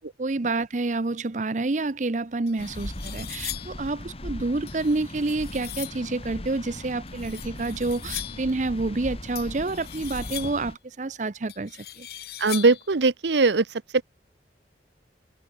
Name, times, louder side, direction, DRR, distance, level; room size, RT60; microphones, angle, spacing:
voice 1, 0.2-12.1, right 2 dB, 45° right, 0.7 m, -28 dB
sound 1, 1.9-2.0 2.5-3.8 4.7-6.1 7.1-8.5 9.3-10.7 11.5-12.9, left 13 dB, 60° left, 7.5 m, -39 dB
sound 2, 2.6-10.8, left 1 dB, 35° left, 2.6 m, -39 dB
voice 2, 12.4-14.0, right 3 dB, 85° right, 0.8 m, -21 dB
head